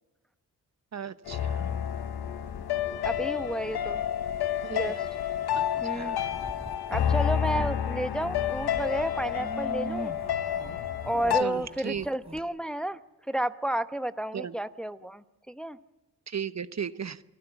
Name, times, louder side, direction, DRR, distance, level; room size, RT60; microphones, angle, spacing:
voice 1, 0.9-1.7 4.6-4.9 5.5-6.4 11.4-12.1 14.3-14.5 16.3-17.2, right 7 dB, 45° right, 13 dB, 1.0 m, -36 dB
sound 1, 1.3-11.4, left 10 dB, 85° left, 1.1 m, -30 dB
voice 2, 3.0-4.0 4.7-5.0 5.8-6.2 6.9-10.1 11.0-13.0 13.3-15.8, right 1 dB, ahead, 11 dB, 0.9 m, -31 dB
sound 2, 6.2-7.8 8.1-12.4, right 2 dB, 15° right, 1.6 m, -42 dB
29.5 x 12.5 x 8.2 m, 1.1 s
supercardioid pair, 45°, 37 cm